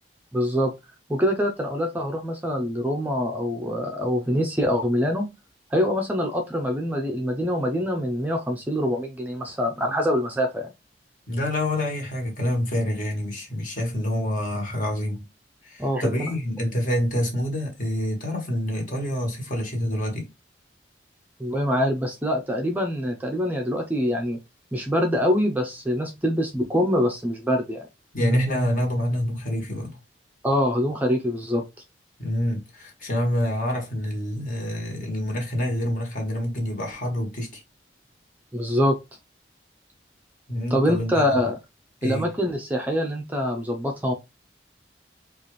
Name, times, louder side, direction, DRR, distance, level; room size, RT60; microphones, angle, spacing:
voice 1, 0.3-0.7 1.1-5.3 5.7-10.7 15.8-16.3 21.4-24.4 24.7-27.8 30.4-31.6 38.5-39.0 40.7-41.6 42.0-44.1, equal, 10° right, 0.5 m, -24 dB
voice 2, 11.3-15.3 15.6-20.3 28.1-30.0 32.2-37.6 40.5-41.5 42.0-42.3, left 1 dB, 45° left, 1.4 m, -27 dB
4.0 x 2.5 x 3.1 m
head